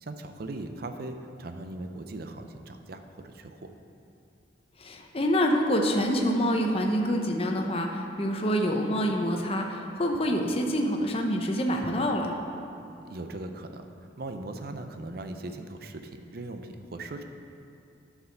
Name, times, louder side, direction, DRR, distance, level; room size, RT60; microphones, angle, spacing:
voice 1, 0.0-3.7 13.0-13.9 14.2-17.2, right 2 dB, 55° right, 7 dB, 0.6 m, -39 dB
voice 2, 4.8-12.4, equal, 30° left, 2 dB, 0.7 m, -26 dB
9.8 x 4.9 x 6.5 m, 2.6 s
head